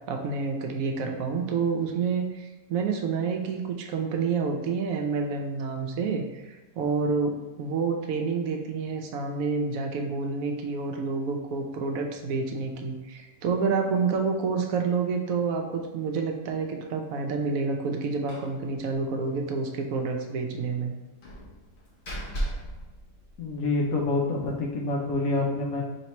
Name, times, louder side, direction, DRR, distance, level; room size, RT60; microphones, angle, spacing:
voice 1, 0.1-20.9, right 4 dB, 70° right, 3 dB, 1.0 m, -28 dB
Slam, 18.3-18.6 18.9-19.0 19.3-19.4 21.2-23.8, right 1 dB, 45° left, 0.8 m, -36 dB
voice 2, 23.4-25.8, left 2 dB, 75° left, -1 dB, 1.1 m, -27 dB
3.2 x 2.9 x 4.2 m, 1.1 s
omnidirectional pair, 1.5 m